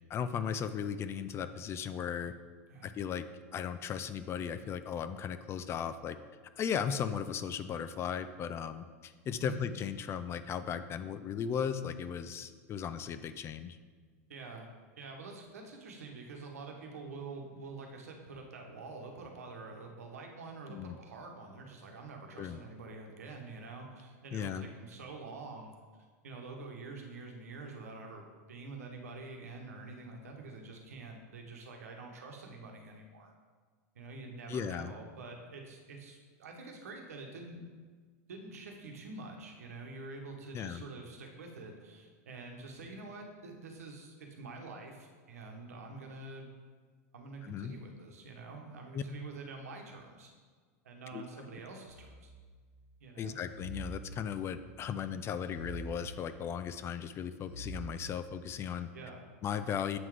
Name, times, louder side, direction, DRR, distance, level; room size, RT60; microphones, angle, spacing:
voice 1, 0.1-2.3 2.8-3.2 3.5-6.2 6.6-13.8 20.7-21.0 22.4-22.6 24.3-24.7 34.5-34.9 40.5-40.8 47.4-47.7 48.9-49.0 51.1-51.2 53.2-58.9 59.4-60.0, left 8 dB, 35° left, 11 dB, 0.4 m, -36 dB
voice 2, 14.3-25.7 26.2-33.3 33.9-37.6 38.3-46.5 47.1-50.3 50.8-52.3 53.0-53.4 58.9-59.2, right 3 dB, 85° right, 2 dB, 1.1 m, -47 dB
sound 1, 51.9-52.8 53.5-54.8 55.4-56.7 57.4-58.6, right 1 dB, 65° left, 1.7 m, -46 dB
7.8 x 3.8 x 4.7 m, 1.5 s
hypercardioid pair, 105°, 8 cm